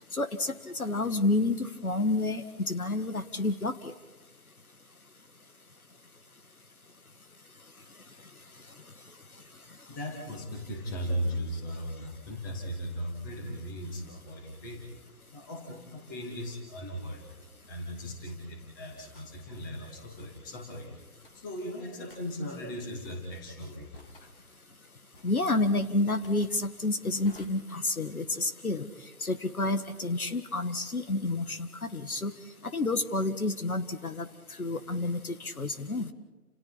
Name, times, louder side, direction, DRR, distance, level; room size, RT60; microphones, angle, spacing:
voice 1, 0.1-3.9 25.2-28.9 29.2-32.3 32.7-34.3 34.6-36.1, left 2 dB, 65° left, 9 dB, 1.9 m, -29 dB
voice 2, 9.9-14.8 15.3-20.9 21.3-23.9 24.2-24.3 24.8-24.9, equal, 15° left, 1 dB, 2.7 m, -37 dB
sound 1, 17.4-17.6 19.1-19.3 20.1-20.4 21.2-21.6 22.1-22.2 23.0-23.4 23.9-24.4 25.1-25.6 26.2-26.6 27.2-27.5, left 2 dB, 35° left, 2.7 m, -54 dB
30.0 x 28.5 x 4.3 m, 1.2 s
figure-of-eight pair, 160°, 46 cm